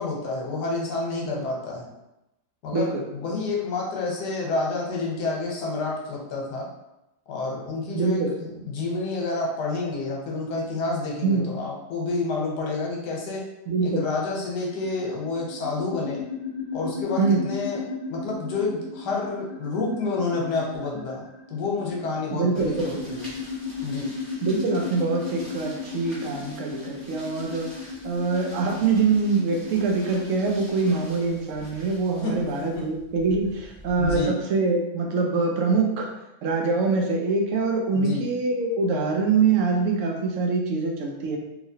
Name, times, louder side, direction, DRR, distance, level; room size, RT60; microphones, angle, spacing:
voice 1, 0.0-1.9 2.6-6.7 7.3-13.5 13.8-16.2 16.7-17.8 18.1-22.8 23.1-23.3 23.8-24.1 32.2-32.8 34.0-34.3 37.9-38.2, left 3 dB, 80° left, -2 dB, 1.4 m, -29 dB
voice 2, 2.7-3.0 7.9-8.3 11.2-11.5 13.7-14.0 17.2-17.4 22.3-23.1 24.4-36.1 36.4-41.4, right 4 dB, 70° right, 1 dB, 0.8 m, -24 dB
sound 1, 14.7-31.0, left 4 dB, 45° left, 0.5 m, -36 dB
sound 2, 22.5-34.2, right 1 dB, ahead, 1.1 m, -45 dB
3.0 x 2.8 x 2.7 m, 0.92 s
omnidirectional pair, 1.8 m